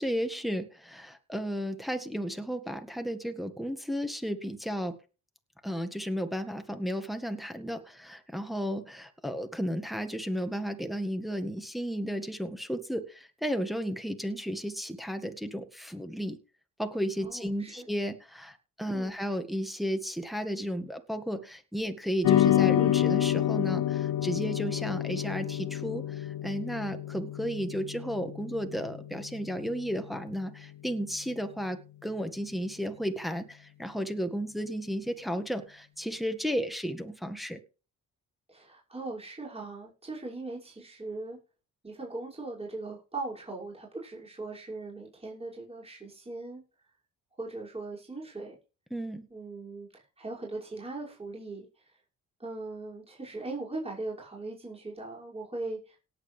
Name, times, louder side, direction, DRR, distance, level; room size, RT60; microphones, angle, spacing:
voice 1, 0.0-5.0 5.6-16.4 16.8-37.6 48.9-49.2, equal, ahead, 6 dB, 1.8 m, -33 dB
voice 2, 17.2-17.9 18.9-19.1 38.5-41.4 41.8-46.6 47.4-48.6 49.3-51.7 52.4-56.0, right 2 dB, 20° right, -4 dB, 5.9 m, -39 dB
sound 1, 22.2-30.8, left 12 dB, 90° left, 1.9 m, -29 dB
18.0 x 7.7 x 3.4 m, 0.33 s
cardioid pair, 90°, 30 cm